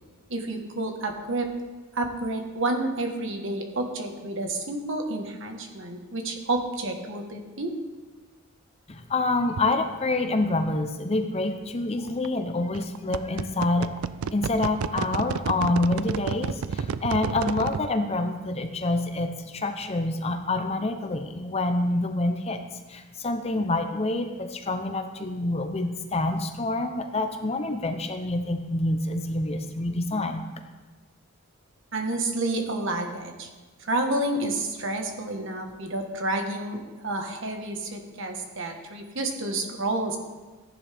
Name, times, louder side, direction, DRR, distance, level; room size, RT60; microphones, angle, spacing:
voice 1, 0.3-1.5 1.9-7.7 31.9-33.5 33.8-40.2, right 2 dB, 55° right, 3 dB, 1.4 m, -30 dB
voice 2, 8.9-14.0 14.3-30.4, left 2 dB, 25° left, 6 dB, 0.6 m, -27 dB
sound 1, 9.6-9.7 12.1-12.3 12.7-17.9, right 6 dB, 75° right, 0.4 m, -29 dB
14.5 x 10.5 x 3.5 m, 1.3 s
head